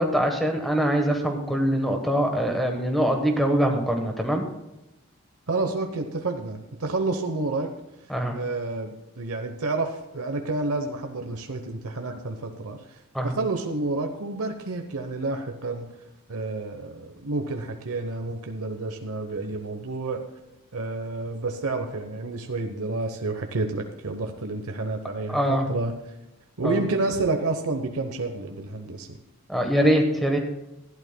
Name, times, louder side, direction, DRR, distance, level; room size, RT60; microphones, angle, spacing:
voice 1, 0.0-4.4 8.1-8.4 13.1-13.3 25.3-25.7 26.6-26.8 29.5-30.4, equal, ahead, 3 dB, 1.1 m, -23 dB
voice 2, 5.5-7.7 8.3-12.8 13.2-15.9 16.3-20.2 20.7-25.9 26.6-29.2, right 3 dB, 80° right, 5 dB, 0.9 m, -29 dB
19.0 x 12.0 x 2.2 m, 0.95 s
head